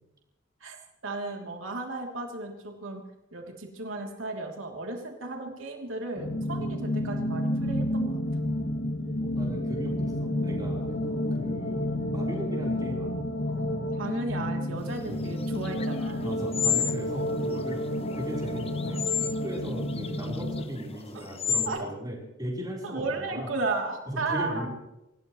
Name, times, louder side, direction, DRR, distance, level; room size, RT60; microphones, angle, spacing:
voice 1, 1.0-3.0 3.3-8.2 13.9-16.3 21.7-21.9 22.8-24.7, right 2 dB, 80° right, 1 dB, 3.1 m, -34 dB
sound 1, 6.2-20.7, left 1 dB, 70° left, 2.3 m, -30 dB
voice 2, 9.2-10.9 11.4-13.1 15.1-15.3 16.2-17.9 18.1-19.0 19.4-23.5 24.1-24.7, equal, 20° right, -3 dB, 4.1 m, -37 dB
sound 2, 14.9-21.7, left 8 dB, 30° left, 0.8 m, -33 dB
26.0 x 17.5 x 3.2 m, 0.93 s
head